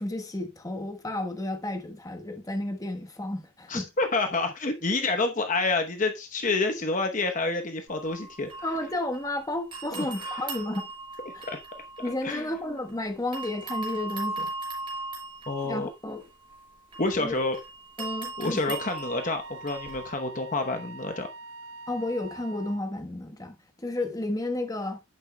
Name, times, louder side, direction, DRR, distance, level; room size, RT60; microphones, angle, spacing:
voice 1, 0.0-3.9 8.6-10.9 11.3-11.5 12.0-14.5 15.6-16.2 17.2-17.3 18.0-18.6 21.9-25.0, left 1 dB, 15° left, 1.2 m, -32 dB
voice 2, 3.7-8.7 9.9-10.6 11.3-11.6 12.2-12.5 15.5-15.9 17.0-17.6 18.4-21.3, left 3 dB, 40° left, 0.9 m, -28 dB
sound 1, 7.9-9.4 9.7-12.9 13.3-20.1, right 2 dB, 25° right, 5.0 m, -38 dB
Wind instrument woodwind instrument, 18.7-22.9, right 2 dB, 70° right, 0.5 m, -44 dB
10.5 x 8.8 x 2.2 m
head